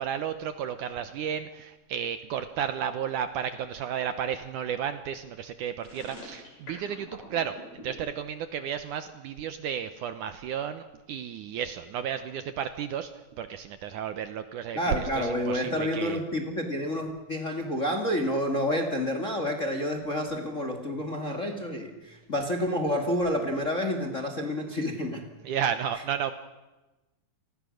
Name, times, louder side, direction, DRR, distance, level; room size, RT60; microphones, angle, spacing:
voice 1, 0.0-13.1 13.4-16.2 25.4-26.3, right 8 dB, 70° right, 10 dB, 2.1 m, -33 dB
sound 1, 5.8-8.0, left 2 dB, 60° left, 8.0 m, -44 dB
voice 2, 14.7-25.2, left 1 dB, 30° left, 5 dB, 1.7 m, -29 dB
29.5 x 20.0 x 6.4 m, 1.1 s
omnidirectional pair, 4.3 m